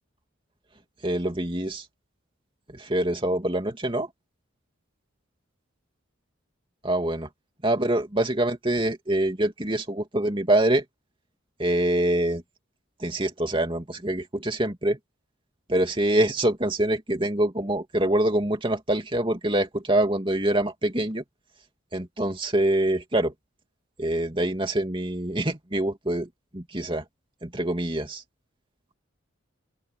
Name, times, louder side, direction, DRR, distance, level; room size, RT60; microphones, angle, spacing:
voice 1, 1.0-1.8 2.7-4.1 6.8-7.3 7.6-10.8 11.6-12.4 13.0-15.0 15.7-21.2 21.9-23.3 24.0-27.0 27.4-28.2, right 1 dB, 25° right, 2.7 m, -25 dB
open air
head